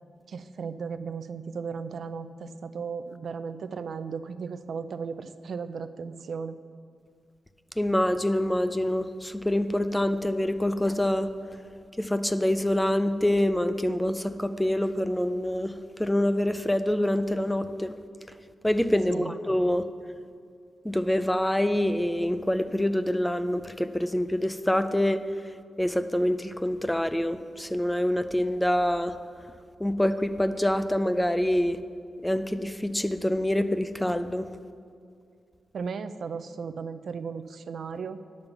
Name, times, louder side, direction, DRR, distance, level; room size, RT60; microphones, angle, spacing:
voice 1, 0.3-6.6 19.1-19.3 35.7-38.2, right 5 dB, 70° right, 11 dB, 0.4 m, -36 dB
voice 2, 7.8-11.3 12.0-18.0 18.6-19.8 20.8-25.2 25.8-29.2 29.8-31.8 32.2-34.5, left 1 dB, 5° left, 11 dB, 0.4 m, -26 dB
10.5 x 5.3 x 7.0 m, 2.3 s
wide cardioid pair, 100°, 0 cm